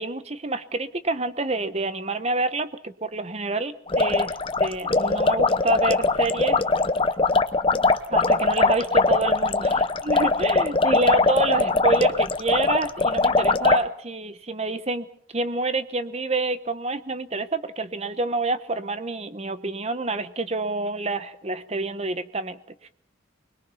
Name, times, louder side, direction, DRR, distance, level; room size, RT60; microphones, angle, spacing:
voice 1, 0.0-6.6 8.1-15.1 15.3-22.9, right 2 dB, 35° right, 12 dB, 1.1 m, -27 dB
sound 1, 3.9-13.8, left 3 dB, 25° left, 0.8 m, -21 dB
24.5 x 21.5 x 5.7 m, 0.64 s
head